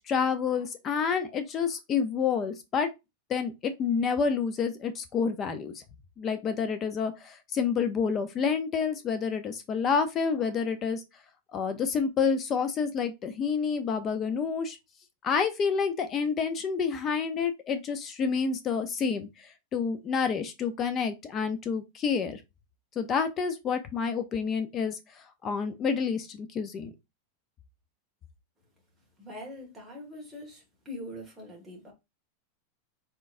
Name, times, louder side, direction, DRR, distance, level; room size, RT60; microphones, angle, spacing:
voice 1, 0.1-2.9 3.3-5.8 6.2-11.0 11.5-14.8 15.2-19.3 19.7-22.4 23.0-25.0 25.4-26.9, left 6 dB, 20° left, 0.5 m, -28 dB
voice 2, 29.2-31.9, left 1 dB, 5° right, 1.5 m, -43 dB
3.9 x 3.9 x 2.5 m
supercardioid pair, 165°, 0 cm